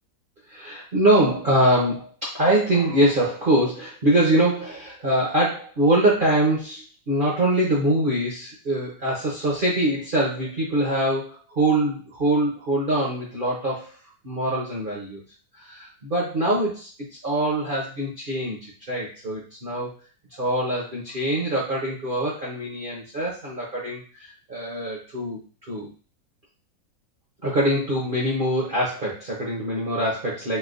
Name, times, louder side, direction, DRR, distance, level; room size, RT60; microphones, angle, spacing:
voice 1, 0.5-14.0 14.2-15.2 15.5-16.9 17.2-19.9 20.4-25.9 27.4-30.6, right 1 dB, 55° right, -5 dB, 0.6 m, -23 dB
4.4 x 2.1 x 2.5 m, 0.38 s
omnidirectional pair, 1.9 m